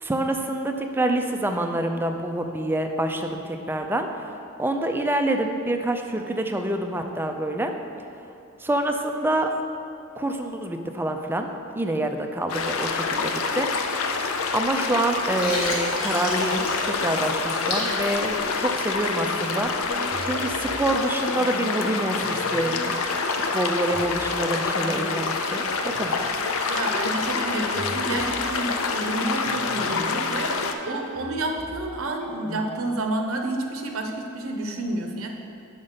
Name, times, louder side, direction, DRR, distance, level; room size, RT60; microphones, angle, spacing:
voice 1, 0.0-4.3 4.6-7.7 8.6-9.5 10.1-14.0 14.5-19.7 20.2-23.0 23.3-26.1, right 1 dB, 10° right, 4 dB, 0.4 m, -27 dB
sound 1, 12.5-30.7, left 4 dB, 65° left, 0.5 m, -27 dB
Water, 15.4-18.9, left 2 dB, 85° left, 1.6 m, -32 dB
sound 2, 19.4-32.7, right 1 dB, 5° left, 1.1 m, -41 dB
voice 2, 26.7-35.3, right 2 dB, 70° right, 3 dB, 0.7 m, -30 dB
6.5 x 5.1 x 5.6 m, 2.9 s
head